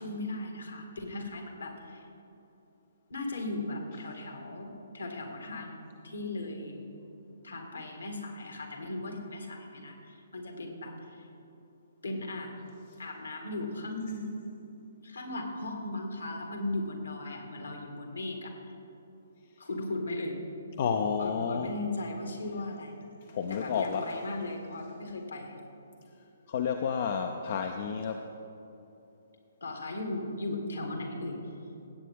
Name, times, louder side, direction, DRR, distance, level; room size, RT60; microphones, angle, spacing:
voice 1, 0.0-2.1 3.1-6.8 7.4-11.3 12.0-12.5 13.0-14.3 15.0-18.5 19.6-20.4 21.2-23.0 23.5-25.6 29.6-31.4, left 2 dB, 70° left, 2 dB, 1.9 m, -37 dB
voice 2, 20.8-21.7 23.3-24.1 26.5-28.2, left 6 dB, 45° left, 5 dB, 0.5 m, -30 dB
16.5 x 8.3 x 3.6 m, 2.9 s
figure-of-eight pair, 130°, 0 cm